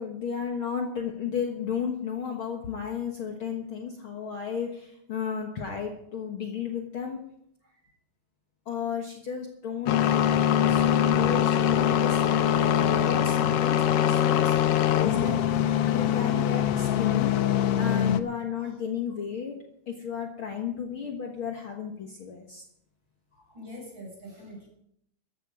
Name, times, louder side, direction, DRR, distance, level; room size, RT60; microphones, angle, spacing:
voice 1, 0.0-7.2 8.7-15.4 15.9-19.5 19.9-22.6, left 7 dB, 50° left, 2 dB, 1.9 m, -33 dB
sound 1, 9.9-18.2, left 10 dB, 70° left, 1.5 m, -23 dB
voice 2, 23.3-24.7, equal, 40° right, -1 dB, 7.2 m, -45 dB
14.5 x 13.0 x 4.9 m, 0.72 s
omnidirectional pair, 3.3 m